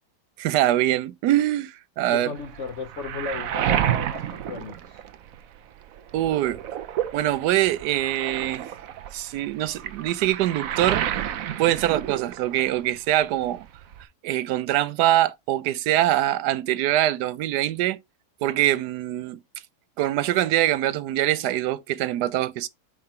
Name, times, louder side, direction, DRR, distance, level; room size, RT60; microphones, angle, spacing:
voice 1, 0.4-2.3 6.1-6.6 7.1-8.7 9.1-11.3 11.6-13.7 14.2-18.0 18.4-19.4 20.0-22.7, right 13 dB, 90° right, 1.2 m, -23 dB
voice 2, 2.0-5.0, left 5 dB, 55° left, 0.9 m, -35 dB
Waves surf, 2.4-5.6 5.9-12.8 13.1-14.0, right 11 dB, 65° right, 1.0 m, -30 dB
5.5 x 4.9 x 4.3 m
omnidirectional pair, 1.7 m